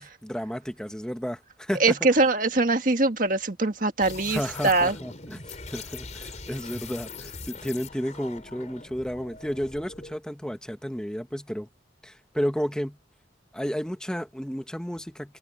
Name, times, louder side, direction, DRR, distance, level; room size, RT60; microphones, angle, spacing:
voice 1, 0.0-2.0 4.3-11.7 12.0-13.0 13.5-15.4, equal, 5° left, 1.2 m, -32 dB
voice 2, 1.8-5.0, right 3 dB, 45° right, 1.7 m, -22 dB
sound 1, 4.0-10.2, left 4 dB, 40° left, 4.6 m, -41 dB
head